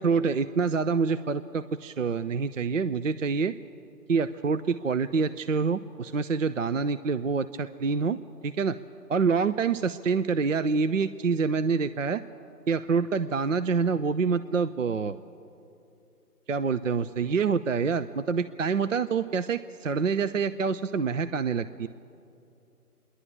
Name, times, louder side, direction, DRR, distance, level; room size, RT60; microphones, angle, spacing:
voice 1, 0.0-3.5 4.1-8.2 8.4-8.8 9.1-12.2 12.7-15.2 16.5-21.9, right 5 dB, 55° right, 12 dB, 0.5 m, -26 dB
26.5 x 11.5 x 8.8 m, 2.7 s
figure-of-eight pair, 140°, 48 cm